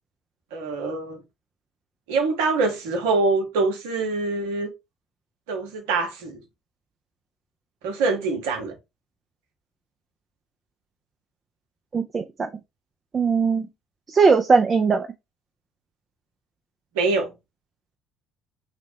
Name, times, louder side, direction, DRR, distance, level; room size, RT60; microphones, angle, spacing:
voice 1, 0.5-1.2 2.1-4.7 5.5-6.4 7.8-8.8 16.9-17.3, right 3 dB, 70° right, 0.7 m, -24 dB
voice 2, 11.9-12.3 13.1-13.7 14.1-15.1, right 5 dB, 35° right, 0.3 m, -19 dB
2.8 x 2.1 x 3.2 m
figure-of-eight pair, 55°, 0 cm